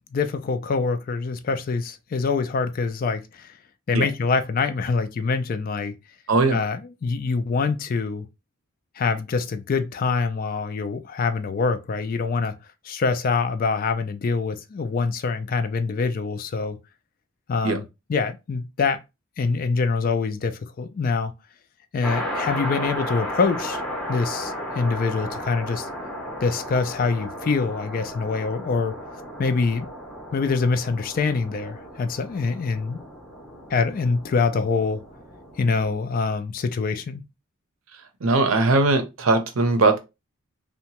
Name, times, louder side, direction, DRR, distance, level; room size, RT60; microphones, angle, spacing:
voice 1, 0.1-3.5 3.9-6.0 6.5-8.3 9.0-12.5 12.9-16.8 17.5-19.0 19.4-21.3 21.9-23.8 24.1-25.9 26.4-29.0 29.4-29.9 30.3-33.0 33.7-35.0 35.6-37.3, left 4 dB, 45° left, 0.3 m, -25 dB
sound 1, 22.0-36.0, equal, ahead, 0.6 m, -34 dB
voice 2, 38.2-40.0, right 3 dB, 80° right, 0.6 m, -19 dB
2.8 x 2.2 x 2.8 m
head